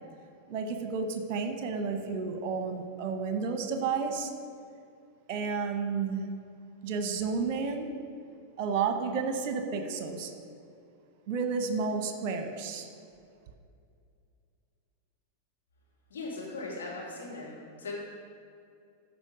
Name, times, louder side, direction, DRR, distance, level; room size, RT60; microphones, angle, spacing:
voice 1, 0.5-4.3 5.3-6.3 6.8-7.9 8.6-10.3 11.3-12.9, right 5 dB, 40° right, 6 dB, 1.0 m, -31 dB
voice 2, 16.1-17.9, left 3 dB, 65° left, -4 dB, 2.7 m, -39 dB
13.0 x 5.1 x 5.1 m, 2.4 s
figure-of-eight pair, 90°, 0 cm